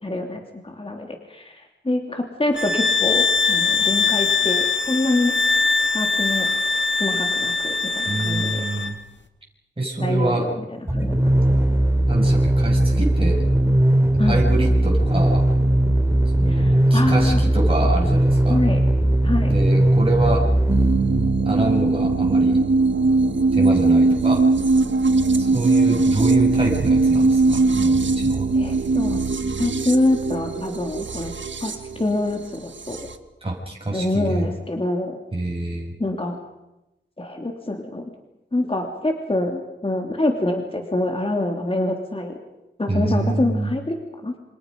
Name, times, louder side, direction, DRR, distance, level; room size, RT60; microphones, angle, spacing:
voice 1, 0.0-5.4 5.9-6.5 7.0-8.6 10.0-10.6 10.9-11.4 14.2-14.4 16.5-17.4 18.5-18.8 19.2-19.5 28.5-29.2 29.6-31.3 31.6-33.1 33.9-35.2 36.0-36.4 37.2-38.0 38.5-42.3 42.8-44.4, left 2 dB, 30° left, 3 dB, 2.9 m, -25 dB
sound 1, 2.5-9.0, left 4 dB, 70° left, 2.0 m, -22 dB
voice 2, 8.1-9.0 9.8-10.5 12.1-13.4 14.2-15.4 16.4-18.6 19.5-20.5 21.5-22.6 23.5-24.4 25.4-28.5 33.4-34.5 35.3-35.9 42.9-43.7, right 2 dB, 30° right, -2 dB, 6.4 m, -26 dB
sound 2, 10.9-21.6, right 1 dB, 15° right, 2.8 m, -18 dB
sound 3, 20.7-33.1, right 3 dB, 75° right, 1.4 m, -20 dB
28.0 x 26.5 x 5.4 m, 0.93 s
wide cardioid pair, 95°, 19 cm